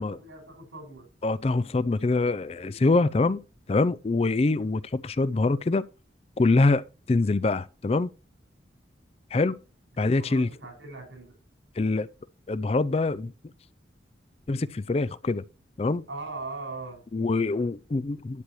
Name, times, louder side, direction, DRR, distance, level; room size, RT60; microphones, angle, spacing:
voice 1, 0.0-1.1 2.6-2.8 9.9-11.3 16.1-17.0, right 3 dB, 90° right, 5.5 m, -40 dB
voice 2, 1.2-3.4 3.7-5.9 6.4-8.1 9.3-9.6 10.0-10.5 11.8-12.1 12.5-13.3 14.5-15.4 15.8-16.0 17.1-18.4, left 3 dB, 35° left, 0.4 m, -24 dB
12.0 x 8.1 x 3.1 m
head